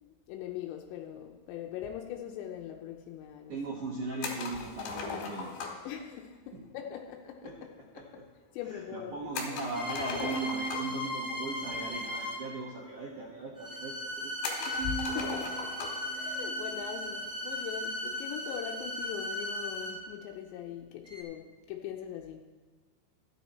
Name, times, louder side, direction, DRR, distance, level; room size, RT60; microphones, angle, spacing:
voice 1, 0.0-3.6 5.8-7.7 8.0-8.1 8.5-9.1 14.7-22.4, left 10 dB, 90° left, 2 dB, 3.0 m, -41 dB
voice 2, 3.5-5.6 6.5-6.6 7.4-7.5 8.0-8.2 8.7-14.3, right 2 dB, 65° right, -3 dB, 2.1 m, -39 dB
sound 1, 4.2-5.9 9.3-11.1 12.1-12.2 12.5-12.6 13.4-13.5 14.4-16.1, left 5 dB, 70° left, 3.1 m, -38 dB
sound 2, 9.7-12.6 13.6-20.2 21.0-21.2, left 1 dB, 20° right, 0.4 m, -37 dB
Bowed string instrument, 10.2-12.6 13.0-13.8 14.8-17.3, right 7 dB, 85° right, 2.9 m, -42 dB
13.0 x 9.3 x 4.2 m, 1.3 s
omnidirectional pair, 5.1 m